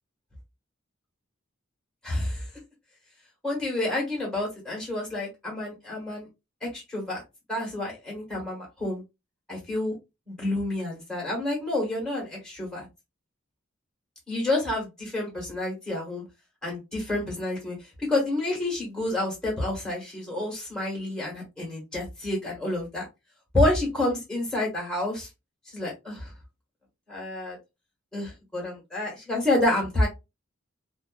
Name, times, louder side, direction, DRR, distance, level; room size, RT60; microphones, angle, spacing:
voice 1, 2.0-2.5 3.4-6.3 6.7-7.2 7.5-9.0 9.5-9.9 10.3-12.9 14.3-16.2 16.6-23.0 23.5-25.3 25.7-26.3 27.1-27.6 28.1-30.1, left 1 dB, 5° left, -3 dB, 1.2 m, -29 dB
2.5 x 2.4 x 2.2 m, 0.24 s
head